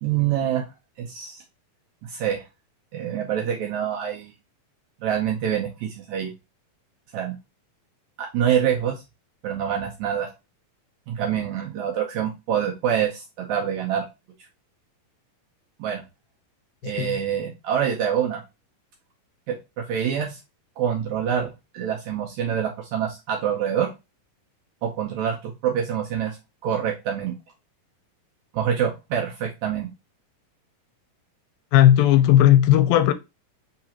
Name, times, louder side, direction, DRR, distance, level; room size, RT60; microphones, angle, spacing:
voice 1, 0.0-0.7 1.0-1.4 2.0-2.4 2.9-4.3 5.0-6.3 7.1-7.3 8.2-9.0 9.4-10.3 11.1-14.0 15.8-16.0 16.8-18.4 19.5-20.4 20.8-23.9 24.8-26.4 26.6-27.3 28.5-29.9, right 9 dB, 75° right, 1.8 m, -26 dB
voice 2, 31.7-33.1, left 12 dB, 85° left, 2.4 m, -15 dB
4.9 x 3.4 x 2.8 m
omnidirectional pair, 4.0 m